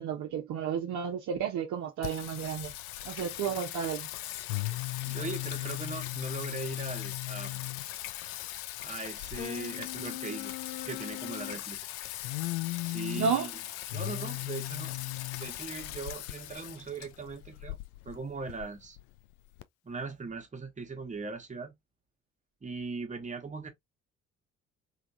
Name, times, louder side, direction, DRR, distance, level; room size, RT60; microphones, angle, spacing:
voice 1, 0.0-2.7 3.0-4.1 13.1-13.5, right 7 dB, 50° right, 0.8 m, -32 dB
Singing, 2.0-19.6, left 16 dB, 65° left, 0.5 m, -37 dB
voice 2, 5.0-7.6 8.8-11.8 12.8-13.5 13.9-14.9 15.4-17.8 18.0-19.0 19.8-21.7 22.6-23.7, right 4 dB, 20° right, 1.2 m, -40 dB
3.6 x 3.0 x 2.7 m
figure-of-eight pair, 45°, 37 cm